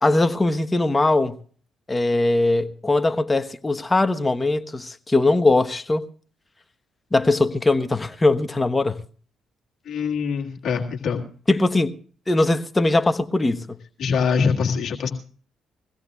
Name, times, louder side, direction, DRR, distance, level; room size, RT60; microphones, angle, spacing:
voice 1, 0.0-1.4 1.9-6.0 7.1-9.0 11.5-11.9 12.3-13.8, left 2 dB, 25° left, 1.1 m, -20 dB
voice 2, 9.9-11.2 14.0-15.1, left 6 dB, 65° left, 1.8 m, -23 dB
22.5 x 16.0 x 2.4 m
hypercardioid pair, 50°, 0 cm